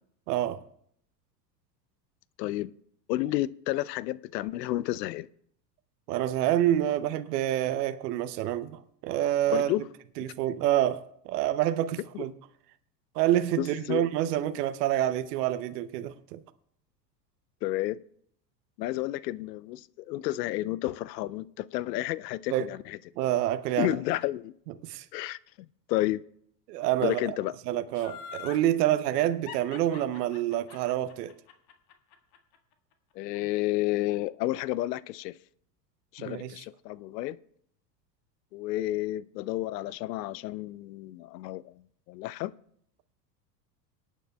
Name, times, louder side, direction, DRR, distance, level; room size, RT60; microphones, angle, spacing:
voice 1, 0.3-0.6 6.1-9.7 10.2-12.3 13.1-16.4 22.5-22.7 23.2-24.0 24.8-25.1 26.7-27.4 27.7-31.3 36.2-36.6, right 12 dB, 70° right, 0.8 m, -27 dB
voice 2, 2.4-2.7 3.1-5.3 9.5-9.8 12.1-12.3 13.6-14.1 17.6-18.0 18.8-23.0 23.8-24.5 25.1-26.2 27.0-27.5 33.2-35.4 36.1-37.4 38.5-41.7 42.1-42.5, left 16 dB, 75° left, 0.6 m, -31 dB
Laughter, 27.9-28.7 29.5-32.6 32.9-33.0, left 7 dB, 50° left, 1.6 m, -43 dB
25.0 x 9.1 x 2.3 m
hypercardioid pair, 90°, 50 cm